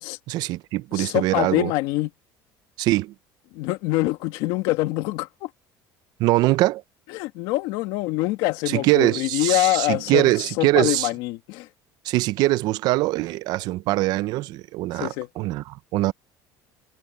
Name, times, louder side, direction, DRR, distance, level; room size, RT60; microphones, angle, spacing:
voice 1, 0.3-1.7 2.8-3.1 6.2-6.8 8.7-11.1 12.0-16.1, right 18 dB, 60° right, 0.6 m, -22 dB
voice 2, 0.9-2.1 3.5-5.5 7.1-10.3 10.6-11.7 15.0-15.3, left 19 dB, 75° left, 2.0 m, -25 dB
cardioid pair, 150°, 8 cm